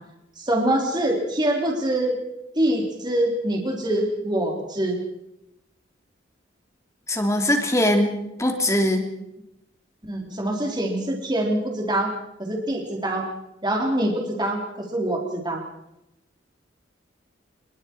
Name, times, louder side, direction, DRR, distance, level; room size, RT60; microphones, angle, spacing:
voice 1, 0.4-2.2 2.5-5.0 10.1-12.1 12.4-13.3 13.6-15.6, right 1 dB, 25° right, 0 dB, 4.3 m, -24 dB
voice 2, 7.1-8.1 8.4-9.1, left 1 dB, 15° left, 4 dB, 2.9 m, -21 dB
27.0 x 22.0 x 4.9 m, 0.87 s
head